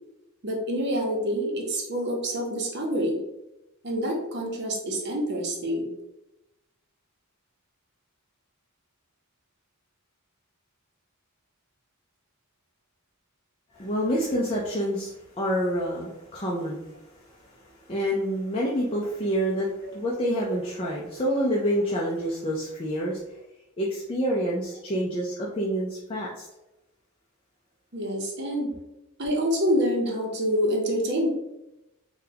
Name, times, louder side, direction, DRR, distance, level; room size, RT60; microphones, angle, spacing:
voice 1, 0.4-3.2 3.8-5.9 19.8-19.9 27.9-28.7 29.2-31.3, equal, 50° right, 0 dB, 0.7 m, -27 dB
voice 2, 13.7-16.9 17.9-23.2 23.8-26.5, equal, 25° left, -4 dB, 0.4 m, -27 dB
3.8 x 2.2 x 2.8 m, 0.91 s
head